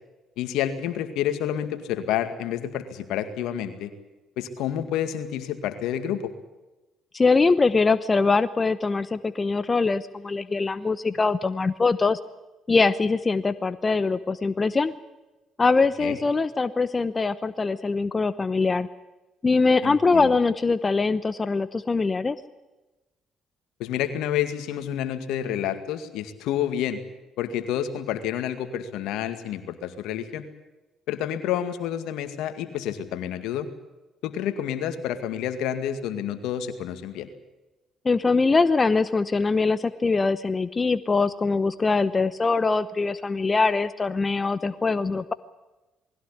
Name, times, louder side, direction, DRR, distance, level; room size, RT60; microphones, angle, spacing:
voice 1, 0.4-3.9 4.4-6.3 16.0-16.2 19.8-20.3 23.8-27.0 27.4-30.4 31.1-33.7 34.2-37.3, left 10 dB, 80° left, 10 dB, 2.0 m, -29 dB
voice 2, 7.1-12.2 12.7-14.9 15.6-18.9 19.4-22.4 38.0-45.3, left 4 dB, 30° left, 14 dB, 0.9 m, -22 dB
20.5 x 16.0 x 10.0 m, 1.1 s
supercardioid pair, 70°, 0 cm